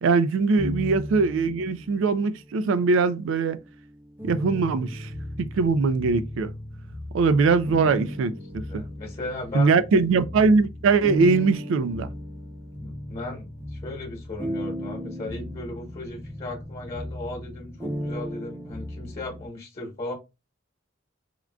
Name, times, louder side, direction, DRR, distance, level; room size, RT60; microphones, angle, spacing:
voice 1, 0.0-3.6 4.2-5.1 5.4-6.5 7.1-8.8 9.5-12.1, right 4 dB, 70° right, 0.3 m, -22 dB
sound 1, 0.6-2.3 2.9-19.5, equal, 10° right, 0.5 m, -36 dB
voice 2, 8.7-9.8 12.8-20.1, left 2 dB, 35° left, 1.0 m, -36 dB
3.6 x 2.3 x 2.2 m
head